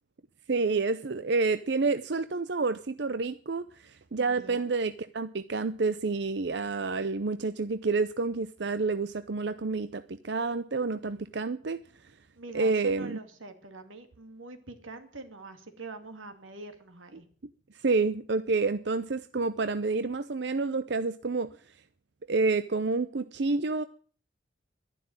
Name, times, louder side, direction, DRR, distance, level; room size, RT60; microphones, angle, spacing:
voice 1, 0.5-12.1 12.5-13.2 17.8-21.5 22.3-23.8, right 3 dB, 60° right, 12 dB, 0.6 m, -29 dB
voice 2, 4.2-4.7 12.4-17.3, right 3 dB, 90° right, 7 dB, 2.5 m, -45 dB
12.0 x 11.0 x 8.8 m, 0.43 s
head